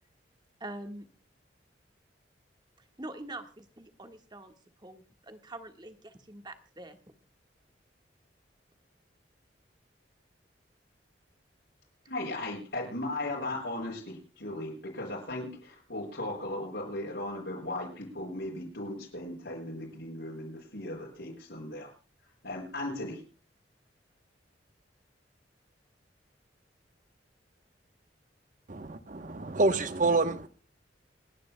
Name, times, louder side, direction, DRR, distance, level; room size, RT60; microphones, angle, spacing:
voice 1, 0.6-1.1 3.0-4.5 4.8-7.0, right 1 dB, 25° right, 1.5 m, -44 dB
voice 2, 12.1-21.9 22.4-23.2, left 1 dB, 70° left, 6.5 m, -37 dB
voice 3, 28.7-30.5, right 3 dB, 45° right, 1.0 m, -27 dB
28.5 x 10.5 x 2.2 m
head